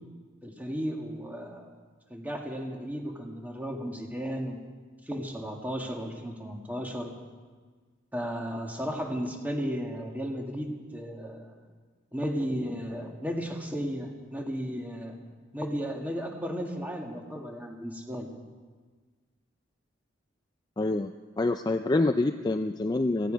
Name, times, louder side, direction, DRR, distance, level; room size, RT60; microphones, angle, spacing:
voice 1, 0.4-1.7 2.1-4.6 5.1-7.1 8.1-11.6 12.1-15.2 15.5-18.3, equal, 10° right, 1 dB, 1.8 m, -34 dB
voice 2, 20.8-21.1 21.4-23.3, left 2 dB, 20° left, 7 dB, 0.4 m, -26 dB
17.5 x 16.0 x 5.1 m, 1.4 s
head